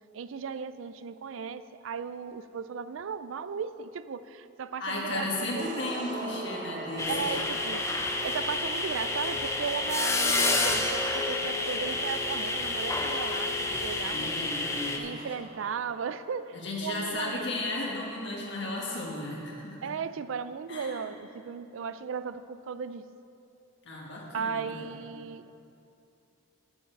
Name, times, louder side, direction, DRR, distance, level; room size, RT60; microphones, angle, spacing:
voice 1, 0.1-5.6 7.1-14.3 15.0-16.6 16.8-17.6 19.8-23.1 24.3-25.5, right 6 dB, 70° right, 14 dB, 0.4 m, -36 dB
voice 2, 4.8-7.4 14.1-15.3 16.5-19.9 20.7-21.1 23.8-25.0, left 2 dB, 55° left, -3 dB, 1.5 m, -35 dB
sound 1, 5.6-16.3, right 2 dB, 35° right, 0.7 m, -44 dB
sound 2, 7.0-15.0, left 2 dB, 15° left, 0.6 m, -29 dB
9.2 x 8.7 x 5.8 m, 2.8 s
head